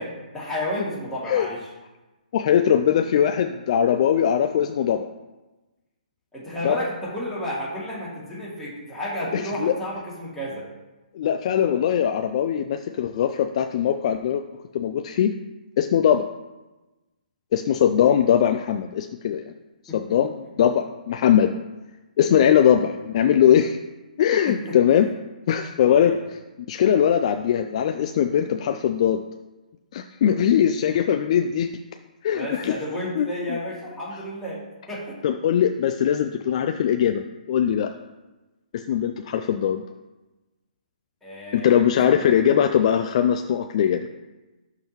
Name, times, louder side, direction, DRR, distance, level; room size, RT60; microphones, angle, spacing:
voice 1, 0.0-1.7 6.3-10.7 19.9-20.0 24.5-24.8 25.8-26.2 32.3-35.2 41.2-42.3, equal, 5° left, -8 dB, 2.5 m, -32 dB
voice 2, 2.3-5.1 6.6-6.8 9.3-9.7 11.2-14.4 14.7-15.3 15.8-16.2 17.5-19.6 19.9-21.5 22.2-23.8 24.2-25.1 25.5-26.1 26.7-29.2 29.9-31.7 32.2-32.7 33.2-33.6 35.2-37.9 38.7-39.8 41.5-44.1, left 9 dB, 45° left, 6 dB, 0.3 m, -21 dB
11.5 x 3.8 x 3.0 m, 1.1 s
figure-of-eight pair, 135°, 5 cm